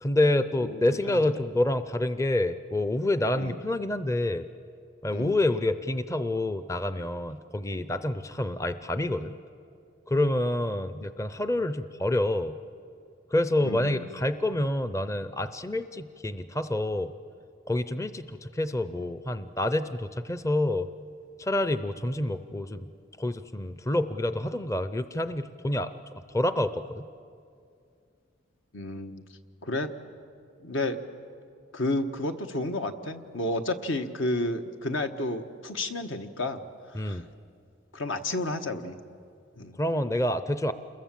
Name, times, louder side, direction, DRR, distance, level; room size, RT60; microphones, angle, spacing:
voice 1, 0.0-4.5 5.0-9.4 10.1-12.6 13.3-17.1 17.7-20.9 21.4-22.9 23.2-27.0 36.9-37.2 39.8-40.7, left 1 dB, 15° left, 12 dB, 0.5 m, -28 dB
voice 2, 0.6-1.2 3.3-3.6 5.1-5.4 13.6-14.1 28.7-29.2 29.6-29.9 30.6-31.0 31.7-36.6 36.9-37.2 37.9-39.0 39.6-39.8, left 2 dB, 75° left, 7 dB, 1.3 m, -31 dB
28.5 x 21.5 x 7.5 m, 2.4 s
head